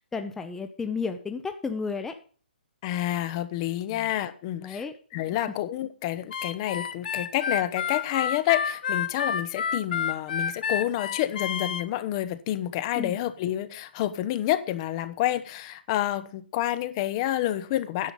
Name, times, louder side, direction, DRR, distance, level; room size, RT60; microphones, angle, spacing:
voice 1, 0.1-2.1 3.9-4.1 4.6-4.9 13.0-13.2, left 5 dB, 5° left, 0.7 m, -32 dB
voice 2, 2.8-4.8 5.1-18.1, left 13 dB, 30° left, 0.9 m, -28 dB
Harmonica, 6.3-11.8, left 7 dB, 55° left, 1.0 m, -29 dB
10.0 x 8.3 x 5.3 m
hypercardioid pair, 140°, 6 cm